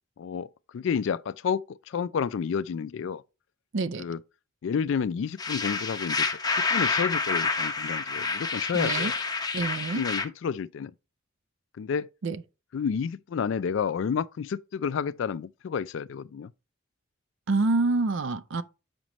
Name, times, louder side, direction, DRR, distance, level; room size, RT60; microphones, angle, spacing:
voice 1, 0.2-0.5 0.7-3.2 4.0-4.2 4.6-9.1 9.9-10.9 11.8-12.1 12.7-16.5, left 6 dB, 60° left, 0.3 m, -30 dB
voice 2, 3.7-4.0 8.7-9.1 9.5-10.0 12.2-12.4 17.5-18.6, right 3 dB, 60° right, 0.5 m, -26 dB
sound 1, 5.4-10.3, left 4 dB, 20° left, 0.7 m, -28 dB
7.5 x 5.2 x 3.0 m
head